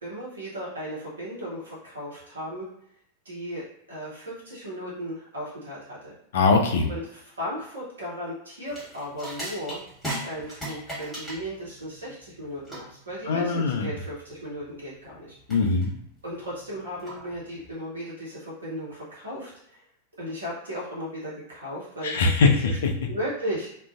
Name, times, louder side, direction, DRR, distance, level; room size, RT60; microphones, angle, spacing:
voice 1, 0.0-2.7 3.2-6.1 6.9-7.0 7.4-9.8 10.2-15.4 16.2-19.8 20.2-22.5 23.1-23.7, equal, 70° right, -7 dB, 0.8 m, -36 dB
voice 2, 6.3-6.9 13.2-13.9 15.5-15.9 22.0-22.9, left 4 dB, 60° left, 3 dB, 0.4 m, -21 dB
sound 1, 8.7-17.7, right 1 dB, 5° left, 1.3 m, -39 dB
2.4 x 2.1 x 2.4 m, 0.71 s
figure-of-eight pair, 90°, 0 cm